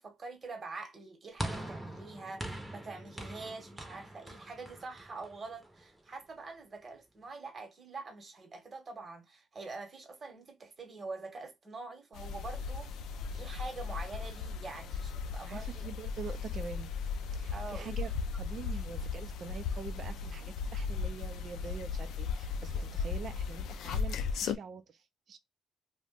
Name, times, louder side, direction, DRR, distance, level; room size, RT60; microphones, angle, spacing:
voice 1, 0.0-12.9 13.3-15.9 17.5-18.0, right 3 dB, 40° right, 1.1 m, -45 dB
sound 1, 1.4-5.8, right 1 dB, 5° right, 0.8 m, -42 dB
sound 2, 12.1-24.6, left 5 dB, 80° left, 0.3 m, -36 dB
voice 2, 15.4-16.9 17.3-25.0 25.3-25.4, right 6 dB, 60° right, 0.5 m, -45 dB
2.4 x 2.2 x 3.6 m
cardioid pair, 90°, 0 cm